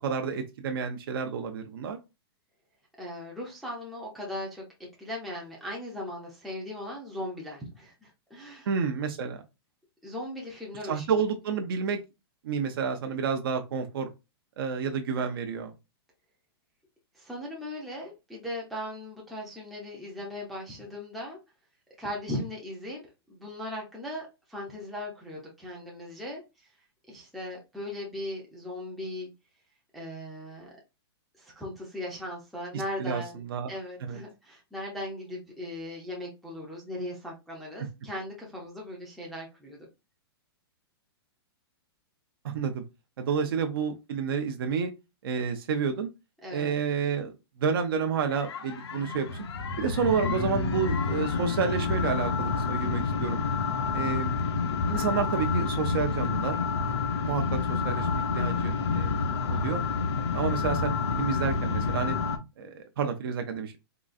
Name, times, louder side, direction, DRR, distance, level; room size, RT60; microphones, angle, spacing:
voice 1, 0.0-2.0 8.7-9.4 10.9-12.0 12.4-14.1 14.6-15.7 33.0-33.7 34.0-34.2 42.4-42.8 43.2-44.9 45.2-46.1 46.5-47.3 47.6-49.5 49.8-53.4 53.9-54.3 54.9-56.6 56.8-56.9 57.2-59.2 59.5-59.8 60.2-62.2 62.6-63.7, right 6 dB, 60° right, 5 dB, 0.5 m, -30 dB
voice 2, 3.0-4.6 5.0-8.7 10.0-11.1 17.1-21.4 22.0-23.0 23.3-26.7 27.1-29.3 29.9-30.7 31.4-33.4 33.7-39.9 43.3-43.5 46.4-46.7 53.8-54.2, left 1 dB, ahead, -4 dB, 0.4 m, -38 dB
sound 1, 48.3-62.4, left 4 dB, 85° left, 0.7 m, -29 dB
3.8 x 2.3 x 2.4 m, 0.25 s
hypercardioid pair, 175°, 13 cm